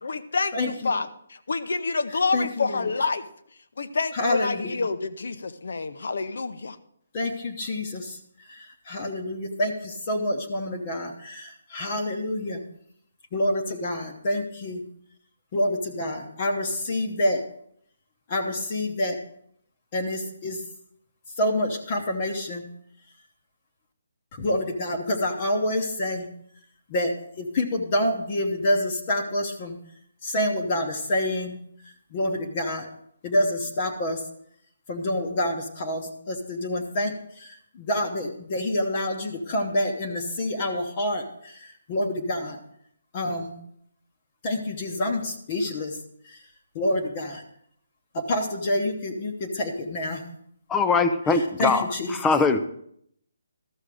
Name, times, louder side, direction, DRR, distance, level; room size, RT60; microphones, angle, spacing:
voice 1, 0.0-3.3 3.8-6.8, left 4 dB, 65° left, 12 dB, 0.8 m, -28 dB
voice 2, 0.5-0.9 2.3-2.9 4.1-4.9 7.1-8.2 8.5-12.6 13.3-14.8 15.5-17.4 18.3-19.2 19.9-20.6 21.4-22.6 24.3-26.3 26.9-29.8 30.2-31.6 31.8-32.9 33.2-34.2 34.9-42.6 43.1-43.5 44.4-46.0 46.2-46.4 46.7-47.4 48.1-50.2 51.3-52.3, left 1 dB, 25° left, 2 dB, 0.9 m, -27 dB
voice 3, 50.7-51.8 52.2-52.6, left 4 dB, 5° left, 10 dB, 0.4 m, -21 dB
13.0 x 6.5 x 4.9 m, 0.69 s
hypercardioid pair, 175°, 0 cm